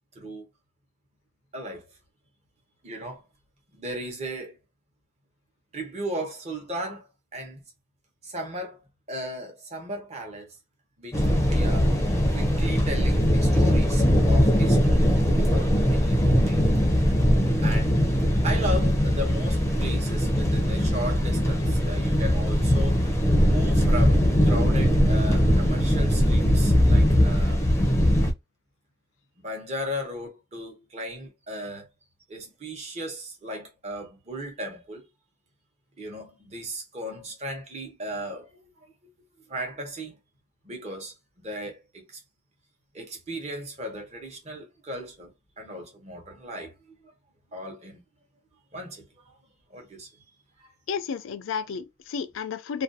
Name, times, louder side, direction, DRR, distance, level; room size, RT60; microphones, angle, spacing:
voice 1, 0.1-0.5 1.5-1.8 2.8-3.2 3.7-4.6 5.7-7.6 8.2-8.8 9.1-10.6 11.0-11.9 12.3-15.1 15.3-16.6 17.6-18.1 18.4-23.1 23.4-27.6 29.4-31.9 32.3-35.0 36.0-38.9 39.5-40.1 40.6-42.2 42.9-45.3 45.6-47.1 47.5-48.0 48.7-49.3 49.7-50.1 50.6-50.7, equal, 35° right, 0.8 m, -36 dB
sound 1, 11.1-28.3, equal, 15° left, 0.5 m, -21 dB
voice 2, 50.9-52.8, left 6 dB, 85° left, 0.4 m, -32 dB
2.5 x 2.2 x 2.6 m
head